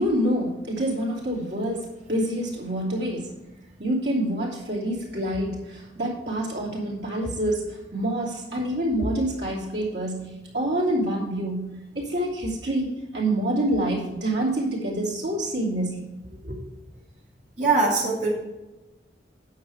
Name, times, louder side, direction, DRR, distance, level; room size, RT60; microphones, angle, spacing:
voice 1, 0.0-3.3 3.8-16.1 16.4-16.6, right 1 dB, 75° right, -4 dB, 2.8 m, -27 dB
voice 2, 17.6-18.3, right 3 dB, 40° right, -5 dB, 2.4 m, -21 dB
9.4 x 7.0 x 4.8 m, 1.1 s
head